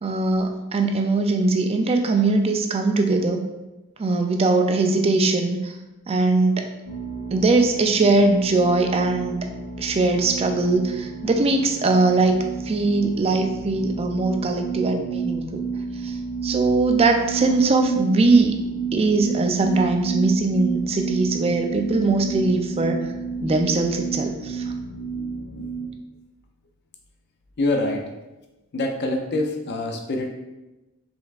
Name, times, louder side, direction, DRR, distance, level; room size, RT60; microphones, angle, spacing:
voice 1, 0.0-3.4 4.0-5.7 6.1-6.7 7.3-9.4 9.8-15.7 16.0-16.2 16.4-18.6 18.9-23.1 23.4-24.6, right 3 dB, 25° right, 4 dB, 0.4 m, -21 dB
sound 1, 6.9-25.9, right 5 dB, 80° left, 0.8 m, -30 dB
voice 2, 27.6-28.0 28.7-30.3, left 2 dB, 50° left, 3 dB, 0.5 m, -25 dB
5.2 x 3.4 x 2.4 m, 1.0 s
head